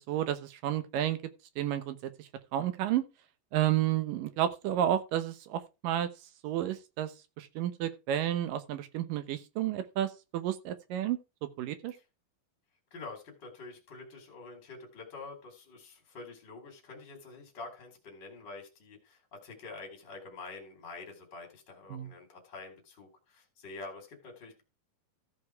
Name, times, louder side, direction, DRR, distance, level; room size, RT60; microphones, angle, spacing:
voice 1, 0.1-1.2 1.6-3.0 3.5-6.1 6.4-7.1 7.4-11.2 11.6-12.0 21.9-22.1, right 11 dB, 70° right, 2.4 m, -31 dB
voice 2, 12.9-24.6, left 3 dB, 30° left, 3.1 m, -47 dB
14.5 x 5.2 x 4.6 m
omnidirectional pair, 4.4 m